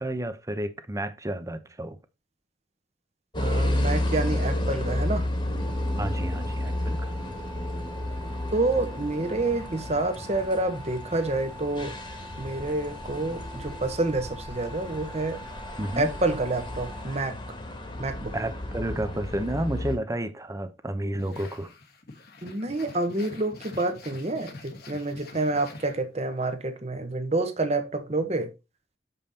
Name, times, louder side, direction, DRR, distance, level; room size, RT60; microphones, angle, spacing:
voice 1, 0.0-2.0 6.0-7.1 15.8-16.1 18.3-21.7, right 1 dB, 15° right, 0.7 m, -31 dB
sound 1, 3.3-20.0, left 1 dB, 25° left, 1.6 m, -32 dB
voice 2, 3.4-5.3 8.5-11.9 12.4-15.4 16.0-17.4 18.0-18.3 22.4-28.5, right 2 dB, 35° right, 1.2 m, -28 dB
sound 2, 5.6-17.0, right 1 dB, 5° left, 1.1 m, -46 dB
sound 3, 21.2-26.4, left 3 dB, 60° left, 1.4 m, -46 dB
7.2 x 5.5 x 4.1 m
head